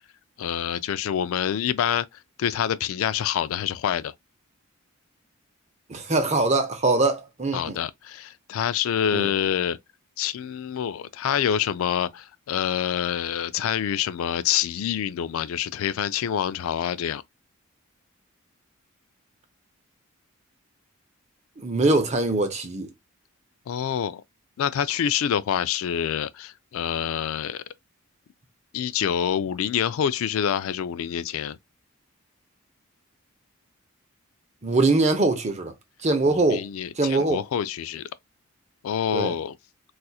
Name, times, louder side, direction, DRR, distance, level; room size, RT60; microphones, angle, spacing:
voice 1, 0.4-2.1 2.4-4.1 7.5-9.8 10.2-17.2 23.7-24.2 24.6-27.6 28.7-31.6 36.3-38.0 38.8-39.5, left 9 dB, 70° left, 0.3 m, -26 dB
voice 2, 5.9-7.8 9.1-9.3 21.6-22.9 34.6-35.7 36.0-36.7 37.0-37.4 39.1-39.3, right 2 dB, 30° right, 0.7 m, -22 dB
4.1 x 2.4 x 2.3 m
head